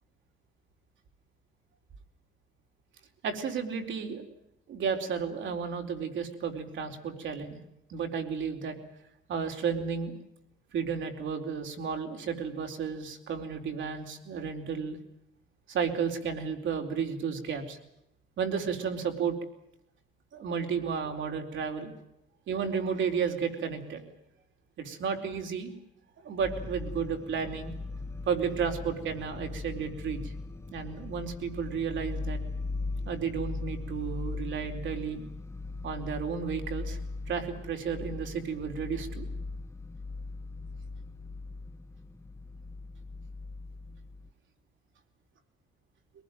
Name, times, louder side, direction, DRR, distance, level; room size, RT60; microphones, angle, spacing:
voice 1, 3.2-4.2 4.7-7.6 7.9-8.8 9.3-10.1 10.7-15.0 15.7-17.8 18.4-19.4 20.3-21.9 22.5-24.0 24.8-25.7 26.2-27.7 28.2-30.3 30.7-32.4 33.0-35.2 35.8-37.0 37.3-39.3, right 6 dB, 70° right, 4 dB, 4.4 m, -32 dB
sound 1, 26.4-44.3, left 3 dB, 15° left, 1.1 m, -39 dB
23.0 x 19.5 x 9.3 m, 0.79 s
cardioid pair, 90°, 20 cm